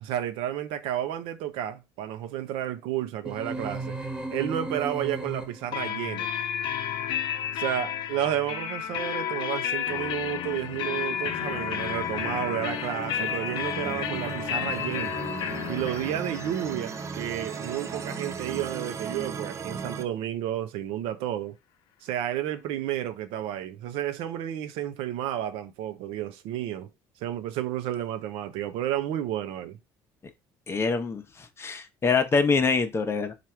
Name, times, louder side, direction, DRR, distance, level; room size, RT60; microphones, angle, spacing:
voice 1, 0.0-4.0 4.3-6.3 7.5-15.2 15.7-21.6 22.0-26.9 27.2-29.8, right 11 dB, 75° right, 0.6 m, -31 dB
sound 1, 3.2-5.9, right 2 dB, 10° right, 1.3 m, -35 dB
sound 2, 5.7-19.3, left 10 dB, 60° left, 0.6 m, -32 dB
sound 3, 10.1-20.0, right 6 dB, 30° right, 0.5 m, -37 dB
voice 2, 30.7-31.2 31.6-33.3, left 4 dB, 25° left, 0.8 m, -24 dB
3.4 x 2.5 x 4.4 m
supercardioid pair, 105°, 9 cm